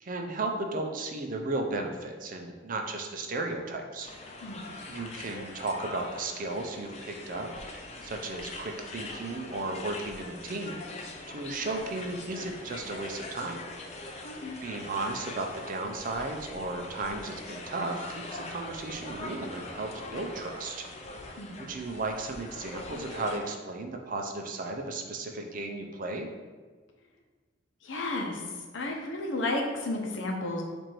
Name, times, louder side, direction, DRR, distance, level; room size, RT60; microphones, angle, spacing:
voice 1, 0.0-4.1 4.4-4.6 4.9-7.5 7.7-10.8 11.3-13.6 14.6-20.9 21.6-26.3, right 2 dB, 45° right, 3 dB, 0.5 m, -35 dB
sound 1, 4.0-23.4, left 2 dB, 35° left, 0.5 m, -42 dB
voice 2, 14.2-14.6 21.4-21.6 27.8-28.4 28.7-30.6, left 2 dB, 90° left, 1 dB, 0.7 m, -32 dB
4.5 x 2.6 x 4.4 m, 1.4 s
head